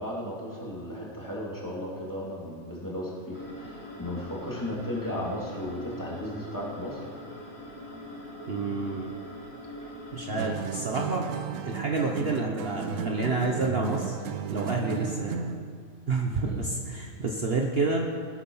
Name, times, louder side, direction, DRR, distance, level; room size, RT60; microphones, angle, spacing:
voice 1, 0.0-7.0 16.4-16.6, left 1 dB, 15° left, -5 dB, 3.0 m, -35 dB
sound 1, 3.3-10.5, left 1 dB, 45° left, 3.0 m, -42 dB
voice 2, 8.5-9.1 10.1-11.3 11.6-14.2 14.5-15.5 16.1-18.1, right 3 dB, 50° right, 1 dB, 1.2 m, -29 dB
sound 2, 10.4-15.7, right 7 dB, 70° right, 1.1 m, -34 dB
20.5 x 8.5 x 5.6 m, 2.2 s
omnidirectional pair, 1.4 m